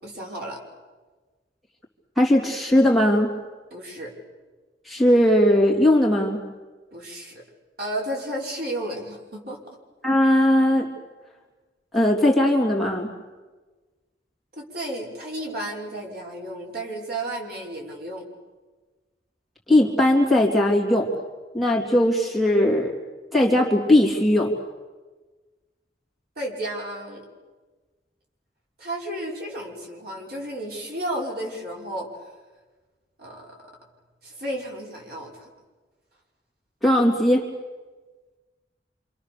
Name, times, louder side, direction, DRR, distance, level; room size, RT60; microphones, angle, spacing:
voice 1, 0.0-0.6 3.7-4.1 6.9-7.4 7.8-9.6 14.5-18.2 26.4-27.2 28.8-32.3 33.2-33.6 34.2-35.5, right 1 dB, 60° right, -2 dB, 5.8 m, -33 dB
voice 2, 2.2-3.3 4.8-6.4 10.0-10.9 11.9-13.1 19.7-21.1 21.5-22.9 23.3-24.5 36.8-37.5, left 1 dB, ahead, -4 dB, 3.4 m, -19 dB
27.5 x 27.5 x 7.0 m, 1.3 s
head